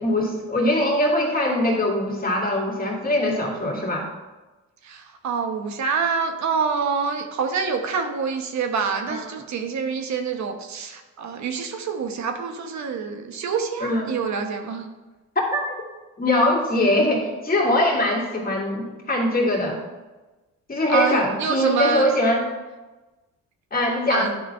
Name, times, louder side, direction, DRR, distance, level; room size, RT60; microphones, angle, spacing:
voice 1, 0.0-4.1 9.1-9.2 13.8-14.1 15.4-15.7 16.2-19.8 20.7-22.4 23.7-24.3, left 1 dB, 30° left, -2 dB, 2.4 m, -22 dB
voice 2, 4.8-14.9 20.9-22.1 24.1-24.4, right 5 dB, 65° right, 5 dB, 1.0 m, -26 dB
11.0 x 4.0 x 5.5 m, 1.2 s
cardioid pair, 90°, 30 cm